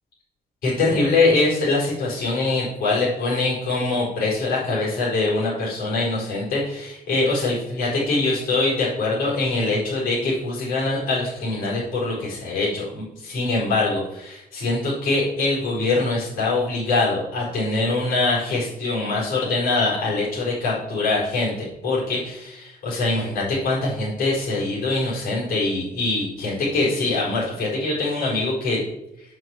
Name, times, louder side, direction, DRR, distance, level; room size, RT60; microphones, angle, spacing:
voice 1, 0.6-28.8, left 2 dB, 60° left, -7 dB, 5.0 m, -23 dB
7.8 x 7.4 x 7.7 m, 0.86 s
cardioid pair, 170°, 16 cm